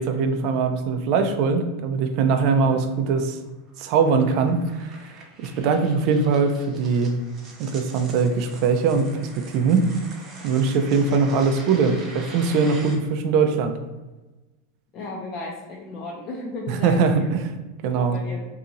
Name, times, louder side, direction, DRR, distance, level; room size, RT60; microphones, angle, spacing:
voice 1, 0.0-3.4 3.8-7.1 7.6-9.9 10.4-13.8 16.7-17.5 17.8-18.2, right 5 dB, 50° right, 6 dB, 0.4 m, -21 dB
sound 1, 2.6-13.0, right 2 dB, 25° right, 0.8 m, -44 dB
voice 2, 14.9-17.3 17.8-18.5, left 2 dB, 35° left, -3 dB, 0.6 m, -35 dB
2.8 x 2.5 x 3.9 m, 1.1 s
supercardioid pair, 140°, 0 cm